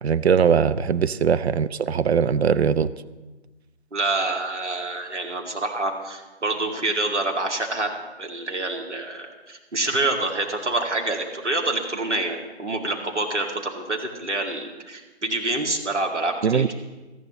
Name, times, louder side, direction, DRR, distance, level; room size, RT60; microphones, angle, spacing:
voice 1, 0.0-2.9 16.4-16.7, right 7 dB, 65° right, 14 dB, 0.6 m, -20 dB
voice 2, 3.9-16.7, right 2 dB, 85° right, 1 dB, 2.3 m, -27 dB
18.0 x 14.0 x 3.1 m, 1.2 s
figure-of-eight pair, 155°, 34 cm